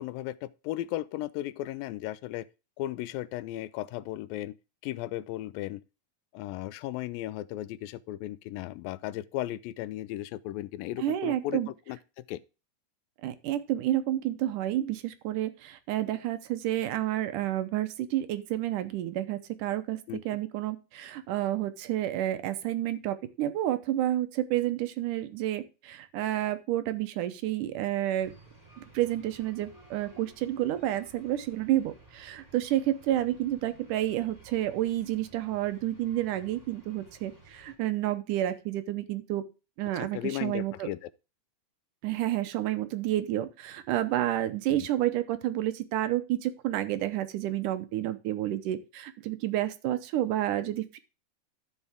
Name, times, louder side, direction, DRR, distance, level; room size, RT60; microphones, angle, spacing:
voice 1, 0.0-2.5 2.8-4.6 4.8-5.8 6.3-11.6 11.9-12.0 12.3-12.4 20.1-20.2 39.9-41.1 44.7-44.9, left 15 dB, 90° left, 2.4 m, -35 dB
voice 2, 11.0-11.7 13.2-20.0 20.3-28.3 28.9-39.4 39.8-40.9 42.0-51.0, right 13 dB, 75° right, 2.2 m, -30 dB
sound 1, 28.2-37.8, right 3 dB, 10° right, 2.8 m, -55 dB
13.5 x 5.5 x 3.5 m
omnidirectional pair, 4.0 m